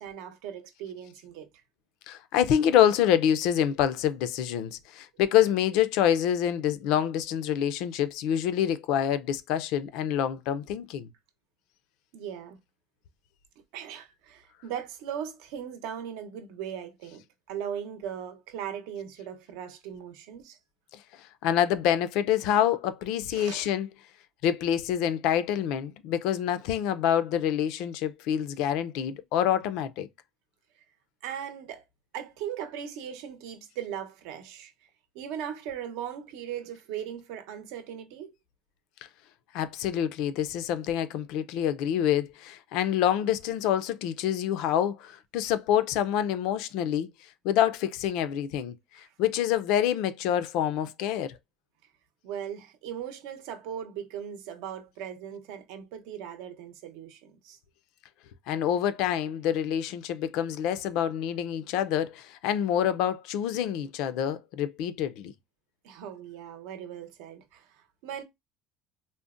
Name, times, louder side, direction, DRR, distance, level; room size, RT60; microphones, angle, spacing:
voice 1, 0.0-1.5 12.1-12.6 13.7-20.6 23.3-23.7 31.2-31.8 32.1-34.7 35.1-38.3 52.2-57.6 65.8-68.2, right 9 dB, 70° right, 0.7 m, -38 dB
voice 2, 2.1-11.1 21.4-23.9 24.4-30.1 39.5-47.1 47.4-51.4 58.5-65.3, left 10 dB, 60° left, 0.4 m, -26 dB
3.8 x 2.0 x 2.4 m
cardioid pair, 165°, 0 cm